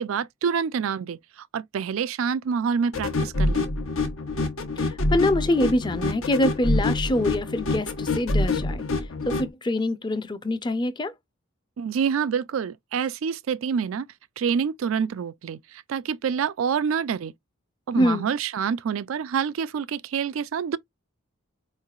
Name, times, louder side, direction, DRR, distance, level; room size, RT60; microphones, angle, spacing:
voice 1, 0.0-3.7 11.8-14.1 14.4-17.3 17.9-20.8, right 6 dB, 80° right, 0.4 m, -27 dB
sound 1, 2.9-9.5, left 2 dB, 85° left, 1.0 m, -26 dB
voice 2, 4.8-8.9 9.3-11.1 18.0-18.2, left 1 dB, 20° left, 0.5 m, -25 dB
4.4 x 3.2 x 2.3 m
head